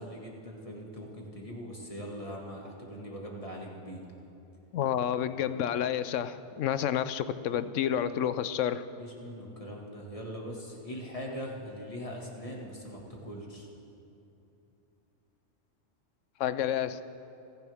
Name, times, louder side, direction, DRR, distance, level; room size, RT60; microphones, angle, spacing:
voice 1, 0.0-4.0 9.0-13.7, equal, 25° left, -2 dB, 2.1 m, -41 dB
voice 2, 4.7-8.8 16.4-17.0, left 10 dB, 75° left, 13 dB, 0.9 m, -29 dB
29.5 x 10.5 x 3.6 m, 2.9 s
omnidirectional pair, 1.3 m